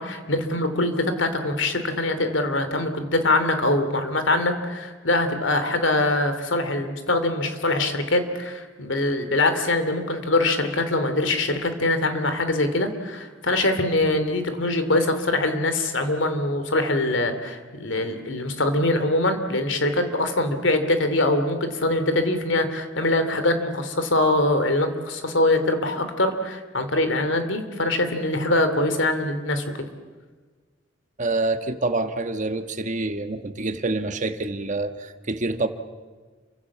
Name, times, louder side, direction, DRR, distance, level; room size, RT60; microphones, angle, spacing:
voice 1, 0.0-29.6, left 2 dB, 70° left, 9 dB, 3.0 m, -23 dB
voice 2, 31.2-35.7, right 2 dB, 40° right, 8 dB, 1.5 m, -26 dB
29.0 x 24.5 x 7.5 m, 1.4 s
head